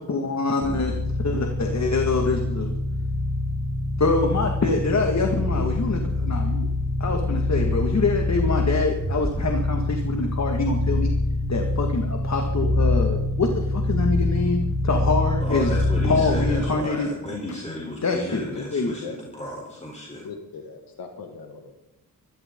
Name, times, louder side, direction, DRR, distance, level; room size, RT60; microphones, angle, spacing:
voice 1, 0.1-0.9 1.2-2.7 4.0-6.7 7.0-11.2 11.5-14.6 14.8-15.7 16.0-17.1 18.0-18.4 18.7-18.9, left 3 dB, 50° left, 3 dB, 1.9 m, -25 dB
sound 1, 0.6-16.7, left 2 dB, 20° right, 4.5 m, -25 dB
voice 2, 15.4-20.3, left 1 dB, 20° left, -1 dB, 3.7 m, -33 dB
voice 3, 20.2-21.7, left 5 dB, 80° left, 4 dB, 1.9 m, -39 dB
25.0 x 12.5 x 3.8 m, 0.90 s
cardioid pair, 60°, 35 cm